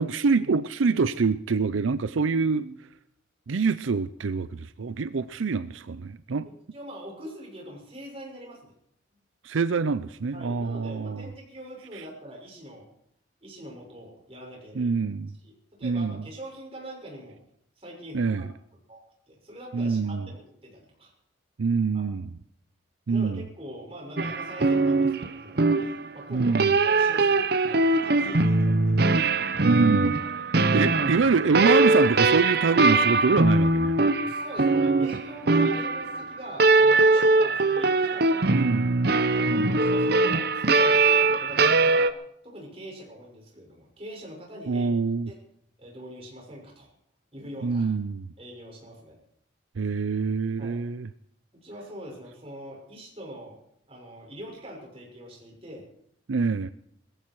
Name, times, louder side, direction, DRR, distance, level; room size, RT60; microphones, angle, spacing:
voice 1, 0.0-2.8 3.5-6.5 9.4-11.3 11.9-12.0 14.8-15.3 15.8-16.2 18.1-18.5 19.7-20.3 21.6-22.3 23.1-23.4 26.3-26.7 29.6-30.1 30.5-34.0 38.4-38.9 39.5-39.8 44.7-45.3 47.6-48.2 49.8-51.1 56.3-56.7, right 4 dB, 85° right, 14 dB, 0.5 m, -25 dB
voice 2, 6.7-8.7 10.3-12.9 13.4-14.9 15.4-15.5 15.8-17.4 17.8-18.5 18.9-21.1 21.9-22.0 23.1-26.6 26.8-29.0 30.2-30.4 34.3-38.5 39.3-42.1 42.4-44.9 45.3-45.4 45.8-46.9 47.3-47.9 48.4-49.2 50.6-50.8 51.6-53.6 53.9-55.9, equal, 30° right, -1 dB, 6.2 m, -43 dB
sound 1, 24.2-42.1, right 3 dB, 55° right, 0.8 m, -22 dB
20.5 x 14.5 x 4.7 m, 0.71 s
head